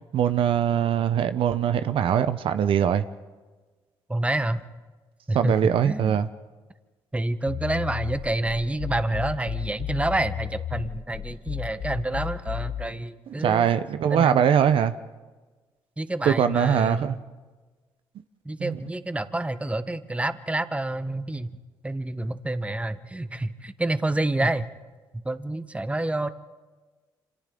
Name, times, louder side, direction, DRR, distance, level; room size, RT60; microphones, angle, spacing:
voice 1, 0.1-3.0 5.3-6.3 13.4-14.9 16.2-17.2 18.6-18.8, right 9 dB, 65° right, 0.8 m, -22 dB
voice 2, 4.1-4.6 5.3-5.6 5.8-6.1 7.1-13.7 14.1-14.4 16.0-17.2 18.4-21.6 21.8-24.7 25.2-26.3, right 2 dB, 10° right, 1.1 m, -28 dB
sound 1, 7.5-12.9, left 11 dB, 65° left, 0.9 m, -34 dB
28.5 x 26.0 x 3.8 m
supercardioid pair, 65°, 10 cm